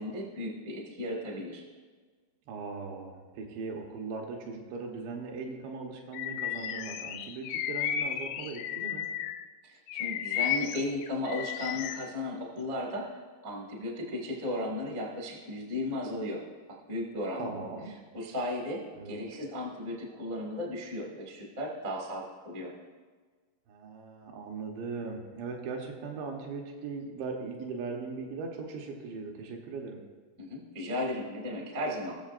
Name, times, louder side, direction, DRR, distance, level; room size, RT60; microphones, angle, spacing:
voice 1, 0.0-1.6 9.6-13.1 13.4-16.4 16.9-17.6 18.1-22.7 30.4-32.2, left 1 dB, 55° right, -2 dB, 0.8 m, -35 dB
voice 2, 2.5-9.1 17.4-17.9 18.9-19.2 23.7-30.0, right 4 dB, 75° right, 1 dB, 3.2 m, -39 dB
Bird vocalization bird call bird song, 6.1-9.5 9.9-12.1, left 10 dB, 90° left, 2.4 m, -34 dB
20.0 x 7.0 x 2.5 m, 1.5 s
omnidirectional pair, 5.3 m